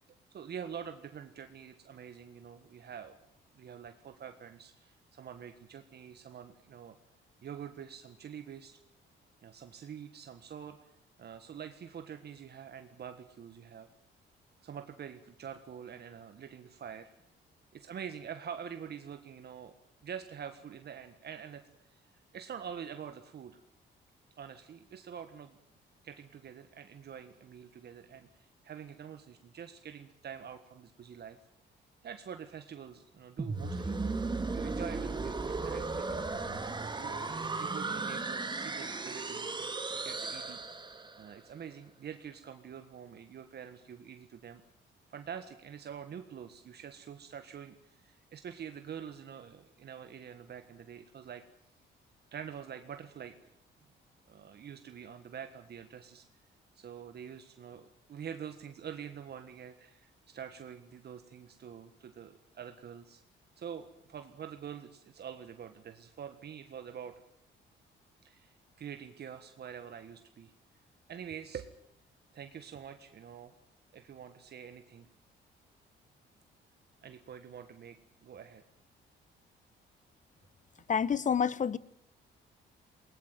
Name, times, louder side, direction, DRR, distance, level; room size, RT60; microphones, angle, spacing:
voice 1, 0.3-3.2 3.5-6.9 7.4-8.8 9.4-10.8 11.2-13.9 14.6-17.1 17.7-19.7 20.0-21.6 21.9-22.0 22.3-23.6 24.4-25.6 26.0-31.4 32.0-34.0 34.5-36.3 36.8-40.6 41.2-44.6 45.1-51.4 52.3-53.3 54.3-56.3 56.7-63.2 63.6-67.1 68.2-70.5 71.1-71.7 72.3-73.5 73.9-75.1 77.0-78.0 78.2-78.6, right 8 dB, 55° right, 1.5 m, -46 dB
sound 1, 33.4-41.3, right 3 dB, 20° right, 2.3 m, -36 dB
voice 2, 80.9-81.8, left 7 dB, 40° left, 1.0 m, -28 dB
20.0 x 19.0 x 9.3 m
cardioid pair, 90°, 20 cm